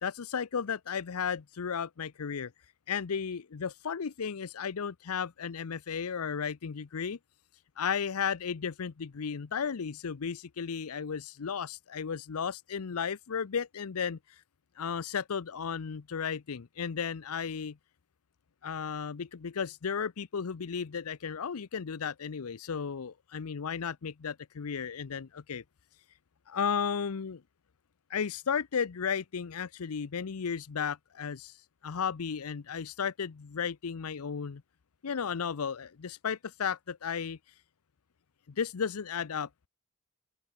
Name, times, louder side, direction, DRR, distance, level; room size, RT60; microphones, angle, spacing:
voice 1, 0.0-2.5 2.9-7.2 7.8-14.2 14.8-17.8 18.6-25.6 26.5-27.4 28.1-31.5 31.8-34.6 35.0-37.4 38.5-39.7, left 6 dB, 90° left, 0.6 m, -34 dB
open air
head